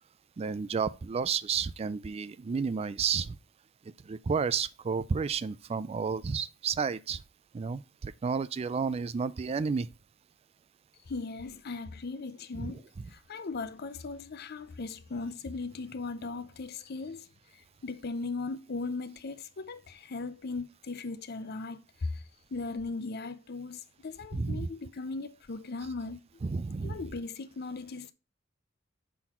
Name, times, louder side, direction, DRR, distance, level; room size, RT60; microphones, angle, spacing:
voice 1, 0.4-3.3 4.1-7.2 7.5-9.9 12.6-12.7 24.3-24.7 26.4-27.0, right 5 dB, 30° right, 0.3 m, -31 dB
voice 2, 11.1-12.8 13.1-17.3 17.8-22.2 22.5-26.4 26.8-28.1, left 3 dB, 50° left, 0.5 m, -38 dB
6.1 x 4.0 x 4.2 m
head